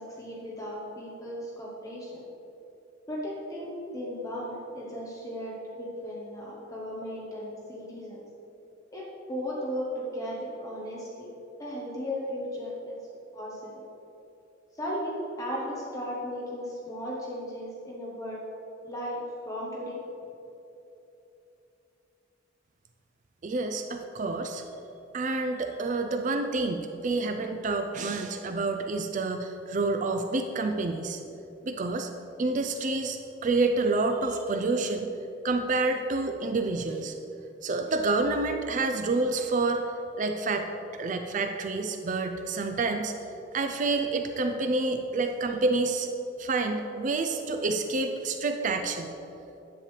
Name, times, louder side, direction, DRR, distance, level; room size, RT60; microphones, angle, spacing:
voice 1, 0.0-2.2 3.1-8.2 8.9-11.3 11.6-13.0 13.3-13.7 14.7-18.4 18.8-20.0, equal, 20° left, -5 dB, 1.1 m, -36 dB
voice 2, 23.4-24.6 25.1-31.2 31.6-32.1 32.4-35.1 35.4-37.1 37.6-40.7 40.9-43.1 43.5-46.1 46.4-49.1, right 3 dB, 40° right, 6 dB, 0.4 m, -28 dB
10.0 x 8.2 x 3.3 m, 3.0 s
head